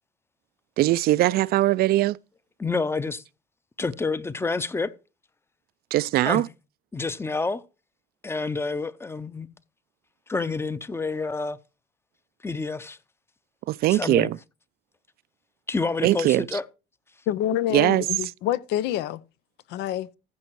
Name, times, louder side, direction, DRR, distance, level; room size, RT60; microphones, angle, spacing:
voice 1, 0.8-2.2 5.9-6.5 13.7-14.4 16.0-16.5 17.7-18.0, right 15 dB, 65° right, 0.4 m, -21 dB
voice 2, 2.6-3.2 3.8-4.9 6.2-6.4 6.9-7.6 8.2-9.5 10.3-11.6 12.4-13.0 13.9-14.3 15.7-16.6, left 3 dB, 15° left, 0.6 m, -28 dB
voice 3, 17.3-19.2 19.7-20.1, left 12 dB, 85° left, 0.6 m, -27 dB
15.0 x 5.3 x 4.6 m
cardioid pair, 110°, 17 cm